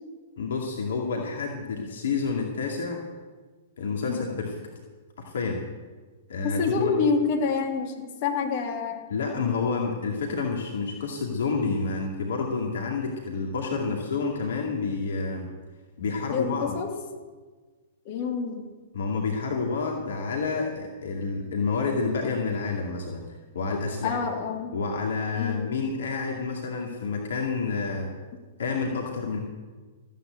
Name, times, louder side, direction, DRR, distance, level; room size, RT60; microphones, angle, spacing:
voice 1, 0.4-3.0 3.8-4.6 5.2-5.6 6.3-6.9 9.1-15.5 16.0-16.8 18.9-23.2 23.5-24.3 24.7-28.1 28.6-29.4, left 4 dB, 65° left, 0 dB, 2.3 m, -29 dB
voice 2, 6.4-9.0 16.3-16.9 18.1-18.7 24.0-24.7 25.3-25.7, left 5 dB, 45° left, 1 dB, 3.0 m, -27 dB
14.5 x 9.4 x 8.1 m, 1.4 s
figure-of-eight pair, 110°, 0 cm